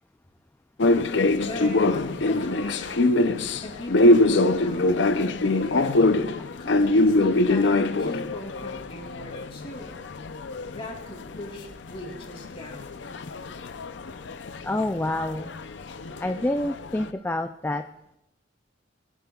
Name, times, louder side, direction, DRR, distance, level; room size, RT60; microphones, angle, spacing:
sound 1, 0.8-11.6 11.9-17.1, left 2 dB, 65° left, 0.5 m, -24 dB
voice 1, 1.4-3.2 3.6-6.0 6.6-10.0 10.7-13.1, left 1 dB, 30° left, -1 dB, 2.7 m, -40 dB
voice 2, 14.6-15.5 16.2-17.8, left 1 dB, 10° left, 6 dB, 0.3 m, -27 dB
21.0 x 10.5 x 2.3 m, 0.86 s
head